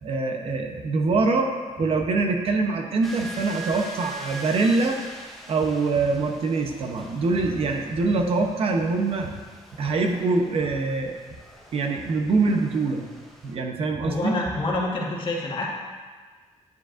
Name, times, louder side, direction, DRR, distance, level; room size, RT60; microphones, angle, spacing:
voice 1, 0.0-1.5 1.8-5.0 5.5-9.4 9.8-11.1 11.7-13.1 13.4-14.3, right 3 dB, 50° right, 3 dB, 0.8 m, -24 dB
sound 1, 3.0-13.6, right 1 dB, ahead, 0.8 m, -42 dB
voice 2, 14.0-15.7, left 2 dB, 45° left, -3 dB, 1.4 m, -27 dB
9.4 x 7.4 x 2.5 m, 1.4 s
wide cardioid pair, 165°, 12 cm